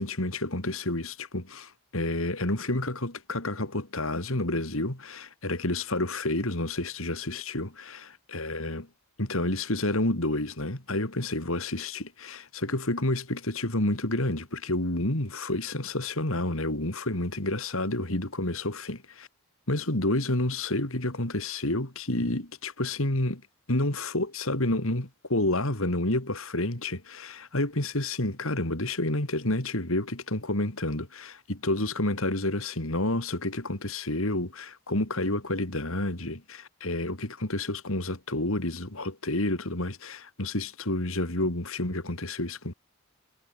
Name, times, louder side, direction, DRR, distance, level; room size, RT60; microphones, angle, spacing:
voice 1, 0.0-8.8 9.2-19.3 19.7-23.4 23.7-42.7, left 1 dB, 65° left, 3.5 m, -29 dB
head